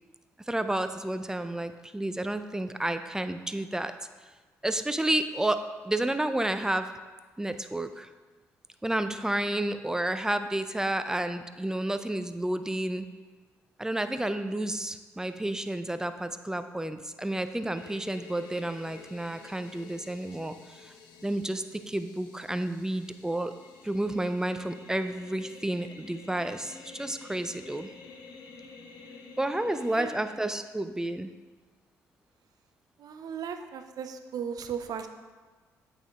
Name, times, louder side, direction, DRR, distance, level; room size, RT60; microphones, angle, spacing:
voice 1, 0.5-3.9 4.6-6.9 7.4-8.1 8.8-13.1 13.8-20.9 21.2-23.5 23.8-27.9 29.4-31.3, right 1 dB, 10° right, 10 dB, 0.4 m, -31 dB
sound 1, 17.7-30.3, left 4 dB, 70° left, 0.6 m, -50 dB
voice 2, 29.8-30.1 33.0-35.1, right 7 dB, 60° right, 8 dB, 0.5 m, -36 dB
8.3 x 3.5 x 3.5 m, 1.3 s
hypercardioid pair, 50°, 7 cm